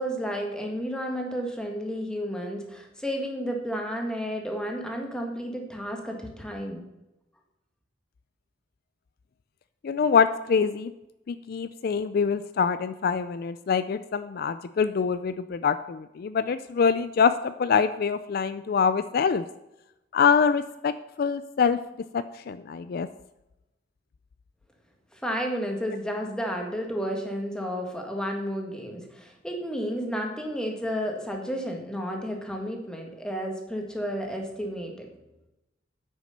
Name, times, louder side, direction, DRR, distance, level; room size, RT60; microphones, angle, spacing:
voice 1, 0.0-6.8 25.1-35.1, equal, 5° left, 1 dB, 1.7 m, -32 dB
voice 2, 9.8-10.9 11.3-19.4 20.1-20.9 21.2-21.8 22.1-23.1, left 6 dB, 55° left, 12 dB, 0.4 m, -25 dB
9.3 x 6.3 x 6.6 m, 0.93 s
head